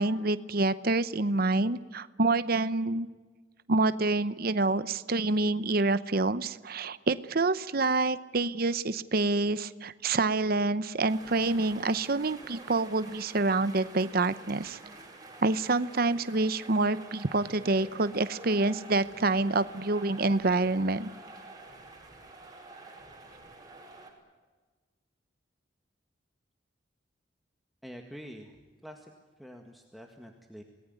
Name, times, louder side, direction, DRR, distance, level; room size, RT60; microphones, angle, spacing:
voice 1, 0.0-3.1 3.7-14.8 15.4-21.1, right 3 dB, 55° right, 14 dB, 0.9 m, -27 dB
sound 1, 11.1-24.1, right 2 dB, 20° right, 5.3 m, -49 dB
voice 2, 27.8-28.5 28.8-29.1 29.4-30.6, equal, ahead, 2 dB, 1.8 m, -46 dB
27.5 x 19.0 x 9.4 m, 1.4 s
head